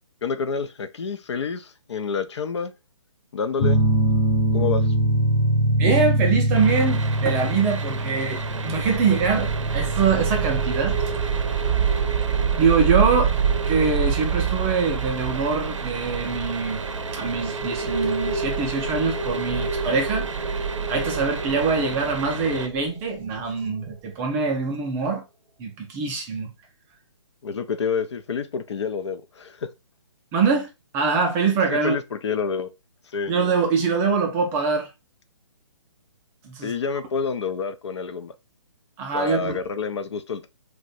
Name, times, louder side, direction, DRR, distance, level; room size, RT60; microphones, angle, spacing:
voice 1, 0.2-2.7 3.3-3.8 4.5-4.9 27.4-29.7 31.7-32.7 33.1-33.3 36.6-38.3 39.1-40.5, left 5 dB, 65° left, 0.5 m, -28 dB
sound 1, 3.6-14.8, right 1 dB, 20° left, 0.7 m, -24 dB
voice 2, 5.8-11.0 12.6-13.3 13.7-16.8 17.1-20.3 20.9-25.2 25.6-26.5 30.3-32.0 33.3-34.9 36.4-36.7 39.0-39.6, right 5 dB, 15° right, 0.4 m, -24 dB
sound 2, 6.5-22.7, right 4 dB, 80° right, 0.5 m, -34 dB
sound 3, 8.5-23.7, right 6 dB, 40° right, 0.9 m, -27 dB
2.5 x 2.2 x 4.0 m
figure-of-eight pair, 140°, 16 cm